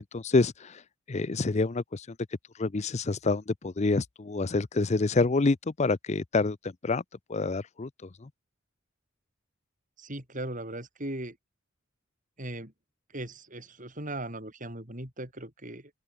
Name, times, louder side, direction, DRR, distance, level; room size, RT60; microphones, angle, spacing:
voice 1, 0.1-0.8 1.1-2.2 2.6-7.0 7.3-8.3, left 3 dB, 35° left, 0.5 m, -27 dB
voice 2, 10.0-11.4 12.4-12.7 13.1-15.9, right 1 dB, 40° right, 6.6 m, -38 dB
open air
head